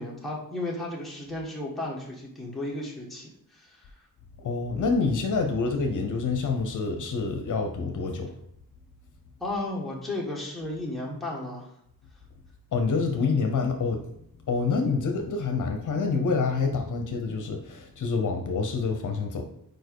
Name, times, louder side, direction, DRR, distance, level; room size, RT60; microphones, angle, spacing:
voice 1, 0.0-3.9 9.4-11.7, left 1 dB, ahead, -4 dB, 1.4 m, -34 dB
voice 2, 4.4-8.3 12.7-14.1 14.5-19.5, left 4 dB, 55° left, 4 dB, 0.8 m, -27 dB
4.8 x 4.6 x 4.6 m, 0.72 s
wide cardioid pair, 145°, 36 cm